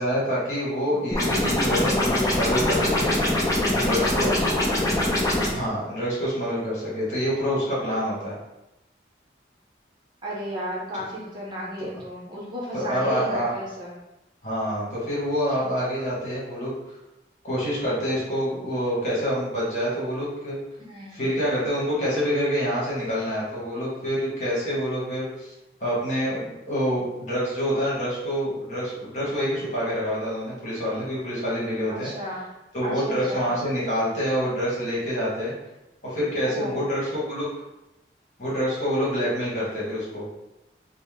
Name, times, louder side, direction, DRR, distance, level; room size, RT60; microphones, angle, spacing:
voice 1, 0.0-3.1 3.7-4.3 5.5-8.4 11.8-11.9 12.7-13.5 14.4-16.7 17.4-20.6 21.1-25.5 25.8-32.1 32.7-35.5 36.0-37.5 38.4-40.2, equal, 40° left, -7 dB, 1.5 m, -27 dB
sound 1, 1.1-5.5, left 1 dB, 20° left, 0.6 m, -23 dB
voice 2, 4.1-4.7 10.2-14.0 20.9-21.2 31.9-32.5 32.8-33.5 36.4-36.8, right 1 dB, 25° right, -6 dB, 0.7 m, -34 dB
4.1 x 2.1 x 3.6 m, 0.93 s
head